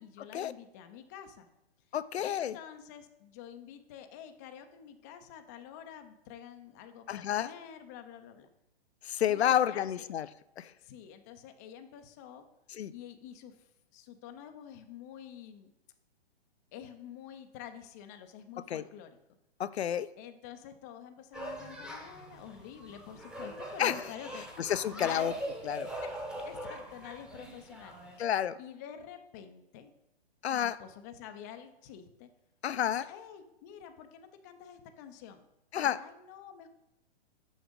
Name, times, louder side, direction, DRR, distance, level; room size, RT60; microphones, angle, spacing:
voice 1, 0.0-1.5 2.2-8.5 9.3-9.9 10.8-12.5 12.9-15.7 16.7-19.2 20.2-24.5 24.9-25.4 26.0-28.0 28.6-29.9 30.5-32.3 32.8-35.5 35.8-36.7, left 9 dB, 20° left, 7 dB, 0.3 m, -48 dB
voice 2, 1.9-2.6 7.1-7.5 9.0-10.3 10.6-10.7 12.7-12.9 18.7-18.8 19.6-20.1 23.8-24.0 24.6-25.3 25.6-25.9 28.2-28.6 30.4-30.8 32.6-33.1 35.7-36.0, left 10 dB, 90° left, 16 dB, 0.5 m, -30 dB
sound 1, 21.3-28.2, right 1 dB, 5° right, 0.7 m, -42 dB
6.2 x 5.9 x 5.2 m, 0.86 s
hypercardioid pair, 140°, 31 cm